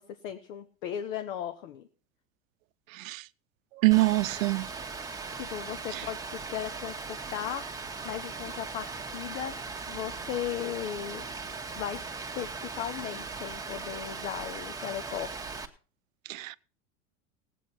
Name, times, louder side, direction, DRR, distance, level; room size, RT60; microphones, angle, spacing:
voice 1, 0.0-1.8 5.3-9.6 9.9-11.2 11.7-12.0 12.3-15.6, left 10 dB, 75° left, 1.0 m, -37 dB
voice 2, 2.9-3.2 3.8-4.7 5.9-6.0 16.3-16.6, right 22 dB, 80° right, 0.6 m, -25 dB
Rain, 3.9-15.7, right 4 dB, 10° right, 1.2 m, -39 dB
18.0 x 8.3 x 4.3 m
hypercardioid pair, 100°, 40 cm